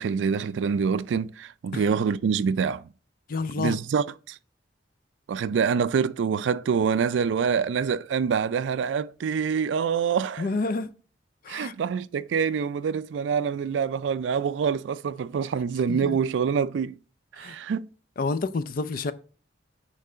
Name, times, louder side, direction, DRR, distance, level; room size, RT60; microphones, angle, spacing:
voice 1, 0.0-2.9 3.6-4.4 5.3-10.5 11.5-17.0 17.4-17.9, right 6 dB, 75° right, 0.3 m, -26 dB
voice 2, 3.3-3.8 10.4-10.9 11.4-11.7 15.9-16.2 17.3-17.6 18.2-19.1, left 3 dB, 50° left, 0.5 m, -29 dB
9.1 x 3.3 x 3.8 m
head